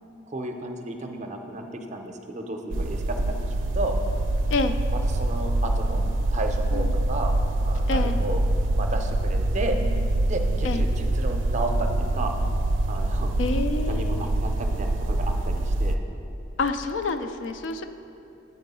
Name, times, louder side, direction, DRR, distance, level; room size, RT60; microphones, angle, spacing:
voice 1, 0.3-3.3 3.7-4.0 4.9-6.0 6.3-7.3 7.6-8.4 8.7-9.8 10.3-12.3 12.9-13.3 13.9-16.0, right 2 dB, 40° right, 4 dB, 0.6 m, -33 dB
sound 1, 2.7-16.0, right 1 dB, 85° right, 0.4 m, -25 dB
voice 2, 7.9-8.2 10.6-10.9 13.4-14.3 16.6-17.8, left 3 dB, 70° left, 8 dB, 0.4 m, -28 dB
8.4 x 4.5 x 5.4 m, 2.8 s
head